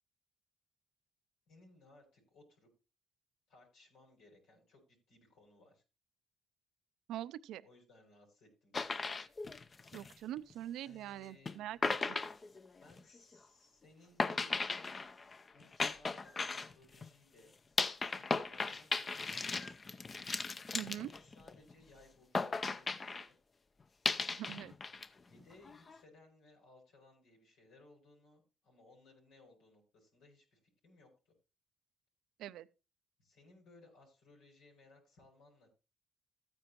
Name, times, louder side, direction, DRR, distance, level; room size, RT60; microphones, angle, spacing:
voice 1, 1.5-2.7 3.5-5.8 7.6-9.1 10.8-11.8 12.8-14.5 15.5-17.5 18.1-19.6 20.8-23.4 25.2-31.3 33.2-35.7, left 2 dB, 90° left, 6.5 m, -63 dB
voice 2, 7.1-7.6 9.9-12.2 20.7-21.1 24.3-24.7 32.4-32.7, right 12 dB, 85° right, 0.4 m, -43 dB
sound 1, 8.7-10.5 11.5-11.6 11.8-13.2 14.2-17.1 17.8-21.7 22.3-23.3 24.0-25.1 25.4-26.0, left 4 dB, 35° left, 0.7 m, -37 dB
14.0 x 9.7 x 3.0 m
cardioid pair, 90°, 0 cm